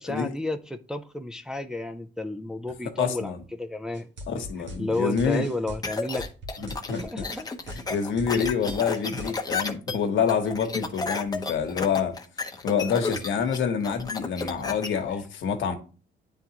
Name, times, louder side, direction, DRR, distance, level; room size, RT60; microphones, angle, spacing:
voice 1, 0.0-4.1 4.6-6.3 7.0-7.5, left 1 dB, 5° right, 0.4 m, -32 dB
voice 2, 3.0-3.4 4.3-5.5 6.6-7.3 7.9-12.2 12.6-15.7, left 6 dB, 75° left, 1.1 m, -27 dB
sound 1, 3.9-9.3, equal, 65° right, 1.3 m, -39 dB
sound 2, 5.8-14.9, left 4 dB, 20° left, 0.8 m, -32 dB
9.1 x 3.6 x 2.9 m
cardioid pair, 90°, 20 cm